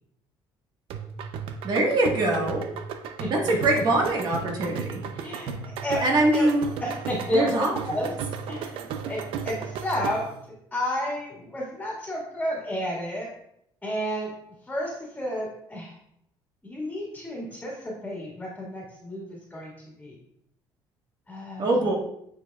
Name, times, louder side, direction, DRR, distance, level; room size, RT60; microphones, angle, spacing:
sound 1, 0.9-10.4, right 6 dB, 80° right, 0.6 m, -35 dB
voice 1, 1.6-2.6 3.3-5.3 6.0-6.7 7.3-7.7 21.6-21.9, right 2 dB, 50° right, -1 dB, 1.5 m, -23 dB
voice 2, 3.2-3.6 5.2-6.0 6.3-6.5 6.8-7.5 7.9-8.1 8.5-9.2 9.4-10.2 10.7-13.3 13.8-14.3 14.7-15.9 16.6-20.1 21.3-21.9, left 1 dB, 10° left, -4 dB, 1.9 m, -31 dB
9.2 x 4.6 x 2.4 m, 0.74 s
cardioid pair, 130°, 9 cm